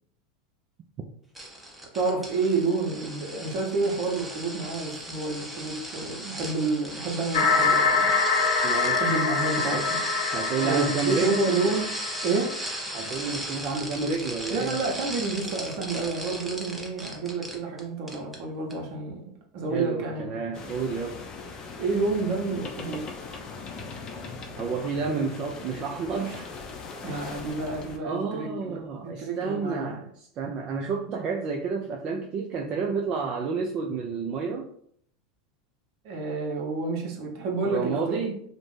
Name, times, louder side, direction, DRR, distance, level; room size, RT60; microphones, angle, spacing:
sound 1, 1.3-17.8 18.1-18.4 18.7-18.8, right 1 dB, 5° right, 0.7 m, -37 dB
voice 1, 1.9-8.1 9.0-10.0 10.6-11.9 12.2-12.6 14.5-20.4 21.8-23.0 27.0-30.0 36.0-38.3, right 3 dB, 60° right, 1 dB, 0.7 m, -29 dB
sound 2, 7.3-13.0, left 4 dB, 85° left, 0.9 m, -25 dB
voice 2, 8.6-9.1 10.3-11.4 12.9-14.8 19.7-21.3 24.6-26.5 27.1-27.3 28.0-34.7 37.6-38.4, right 5 dB, 40° right, 1 dB, 0.3 m, -30 dB
sound 3, 20.5-28.0, left 4 dB, 35° left, 0.5 m, -40 dB
2.5 x 2.1 x 3.1 m, 0.65 s
hypercardioid pair, 95°, 2 cm